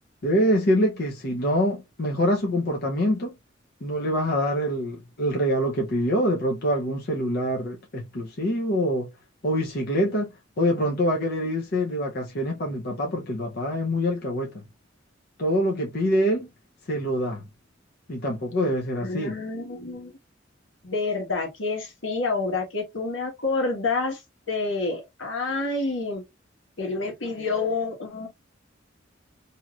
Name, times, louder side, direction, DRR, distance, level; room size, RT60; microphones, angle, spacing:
voice 1, 0.2-3.3 3.8-9.1 9.4-10.3 10.6-14.6 15.4-16.5 16.9-17.4 18.1-19.4, equal, 55° left, 0.7 m, -25 dB
voice 2, 19.0-20.1 20.8-24.2 24.5-26.2 26.8-28.3, left 3 dB, 90° left, 1.3 m, -28 dB
3.0 x 2.8 x 2.4 m
head